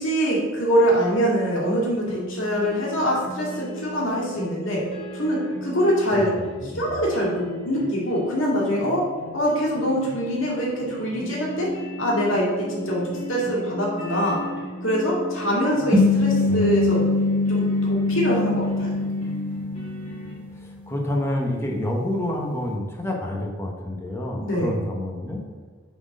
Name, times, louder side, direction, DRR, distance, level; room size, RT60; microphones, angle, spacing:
voice 1, 0.0-4.8 5.1-6.3 6.7-9.1 9.3-11.7 12.0-14.4 14.8-17.0 17.5-18.9 24.4-24.7, equal, 80° left, -5 dB, 2.2 m, -24 dB
sound 1, 2.1-20.3, equal, 30° left, 1.9 m, -36 dB
voice 2, 6.1-6.9 16.5-16.8 20.5-25.4, left 1 dB, 15° left, 0 dB, 1.0 m, -28 dB
sound 2, 15.9-20.6, left 2 dB, 10° right, 0.9 m, -22 dB
6.8 x 4.3 x 5.4 m, 1.4 s
head